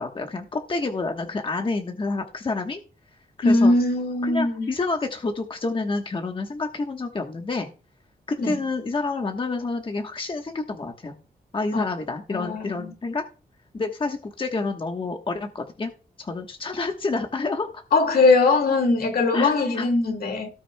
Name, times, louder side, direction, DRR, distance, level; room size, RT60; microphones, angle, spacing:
voice 1, 0.0-2.8 3.4-3.7 4.2-7.7 8.3-11.1 11.5-13.2 13.7-15.9 16.2-17.7 19.3-19.9, left 3 dB, 30° left, 1.1 m, -28 dB
voice 2, 3.4-4.7 8.4-8.6 11.7-11.8 12.3-12.9 17.9-20.5, left 3 dB, 65° left, 2.0 m, -20 dB
18.0 x 6.2 x 2.2 m
wide cardioid pair, 125°, 16 cm